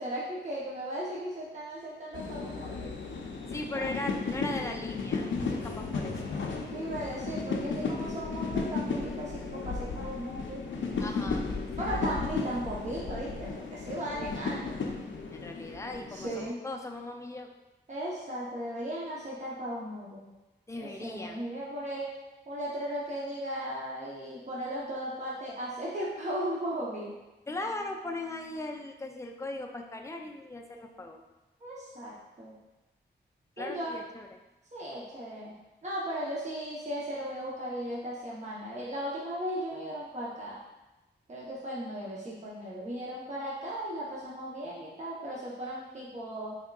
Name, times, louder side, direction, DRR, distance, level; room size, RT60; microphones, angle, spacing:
voice 1, 0.0-3.0 3.7-3.9 6.6-10.6 11.8-14.7 16.1-16.6 17.9-20.3 20.7-22.1 22.5-27.1 31.6-32.5 33.6-34.0 34.7-35.6 35.8-40.6 41.3-46.6, right 1 dB, 40° right, -6 dB, 0.8 m, -36 dB
sound 1, 2.1-16.5, left 4 dB, 80° left, 0.5 m, -34 dB
voice 2, 3.5-6.3 11.0-11.5 11.8-12.0 15.3-17.5 20.7-21.4 27.5-31.2 33.6-34.3, left 2 dB, 15° left, 2 dB, 0.4 m, -38 dB
3.5 x 3.5 x 2.3 m, 1.0 s
wide cardioid pair, 90°, 19 cm